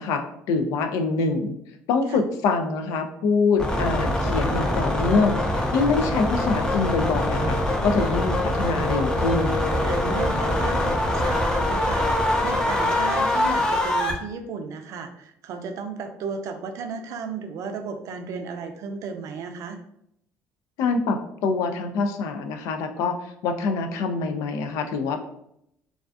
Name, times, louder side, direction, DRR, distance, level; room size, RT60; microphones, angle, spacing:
voice 1, 0.0-1.5 1.9-9.6 20.8-25.2, left 4 dB, 80° left, 7 dB, 0.3 m, -25 dB
sound 1, 3.6-14.1, left 1 dB, 15° left, 0.5 m, -24 dB
voice 2, 9.8-19.8, right 5 dB, 65° right, 6 dB, 0.4 m, -34 dB
2.3 x 2.2 x 2.5 m, 0.74 s
supercardioid pair, 85°, 6 cm